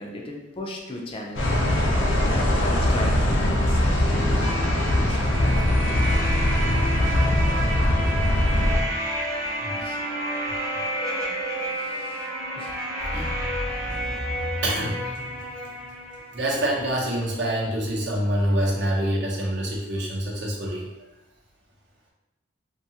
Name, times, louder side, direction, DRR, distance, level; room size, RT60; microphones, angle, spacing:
voice 1, 0.0-2.1 2.6-5.6 9.7-10.0 11.7-12.3 12.6-12.8 13.1-13.3 13.9-14.2, left 1 dB, 30° left, 0 dB, 0.4 m, -37 dB
sound 1, 1.4-8.8, left 1 dB, 75° left, 0.6 m, -21 dB
sound 2, 4.4-17.1, equal, 15° right, 0.6 m, -31 dB
sound 3, 7.0-10.0 13.0-16.4, equal, 40° right, 0.9 m, -34 dB
voice 2, 14.6-15.0 16.3-20.9, right 1 dB, 65° right, -2 dB, 0.7 m, -26 dB
2.7 x 2.3 x 2.7 m, 1.0 s
head